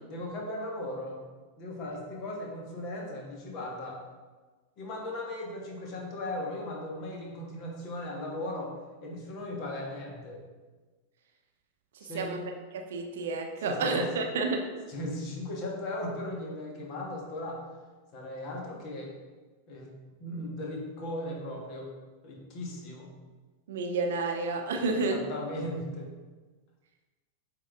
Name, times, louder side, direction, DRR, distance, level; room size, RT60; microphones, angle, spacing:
voice 1, 0.1-1.2 1.6-4.0 4.8-8.7 9.0-10.4 12.0-12.3 13.6-14.1 14.9-17.6 18.1-19.1 19.7-19.9 20.2-21.9 22.2-23.1 24.9-26.1, left 1 dB, 40° left, -1 dB, 1.6 m, -37 dB
voice 2, 12.7-14.6 23.7-25.2, right 3 dB, 60° right, 4 dB, 0.8 m, -30 dB
8.4 x 3.9 x 3.6 m, 1.3 s
figure-of-eight pair, 90°, 0 cm